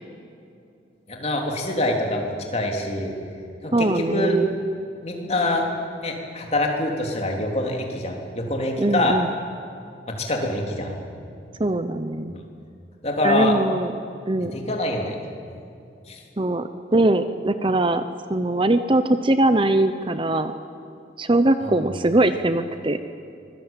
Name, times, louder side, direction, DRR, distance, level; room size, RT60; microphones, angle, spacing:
voice 1, 1.1-3.1 3.6-4.3 5.0-5.6 5.9-9.2 10.1-11.0 12.3-12.4 13.0-13.5 14.5-15.2 16.1-16.2 21.6-21.9, left 1 dB, 35° left, 1 dB, 3.5 m, -25 dB
voice 2, 3.7-4.5 8.8-9.3 11.6-12.3 13.2-13.9 14.3-14.6 16.4-18.0 18.3-20.5 21.2-23.0, right 2 dB, 30° right, 10 dB, 0.8 m, -21 dB
24.5 x 20.0 x 9.1 m, 2.6 s
head